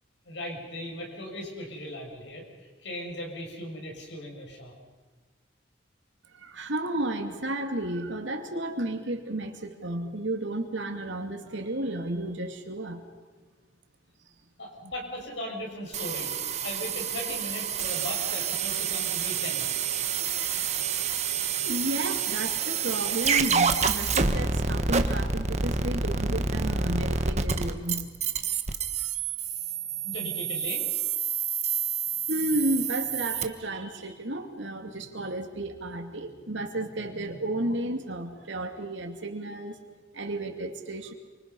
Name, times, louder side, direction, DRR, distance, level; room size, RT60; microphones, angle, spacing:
voice 1, 0.3-2.5 2.8-4.7 14.6-16.3 16.6-19.7 30.0-31.0, left 1 dB, 70° left, 0 dB, 7.1 m, -38 dB
voice 2, 6.3-13.0 21.6-28.1 29.0-29.1 32.3-39.8 40.1-41.1, right 1 dB, 80° right, 4 dB, 2.8 m, -32 dB
sound 1, 15.9-33.4, right 6 dB, 35° right, 1.4 m, -28 dB
28.0 x 25.5 x 5.6 m, 1.3 s
head